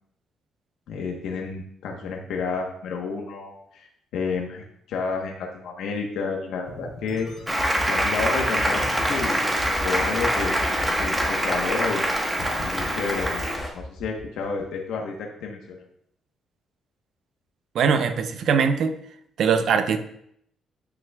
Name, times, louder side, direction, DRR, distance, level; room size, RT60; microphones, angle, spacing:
voice 1, 0.9-7.3 7.9-9.5 9.8-10.6 11.0-12.0 12.6-13.4 13.7-15.6, left 4 dB, 80° left, 0 dB, 1.1 m, -30 dB
sound 1, 6.7-12.1 12.4-12.8 13.2-14.6, left 1 dB, 50° left, 2.6 m, -36 dB
Applause, 7.5-13.6, right 1 dB, 10° right, 1.3 m, -25 dB
sound 2, 8.7-13.7, left 1 dB, 10° left, 2.6 m, -33 dB
voice 2, 17.7-18.9 19.4-20.0, right 6 dB, 70° right, 8 dB, 0.7 m, -21 dB
10.5 x 6.1 x 2.4 m, 0.70 s
cardioid pair, 90°, 0 cm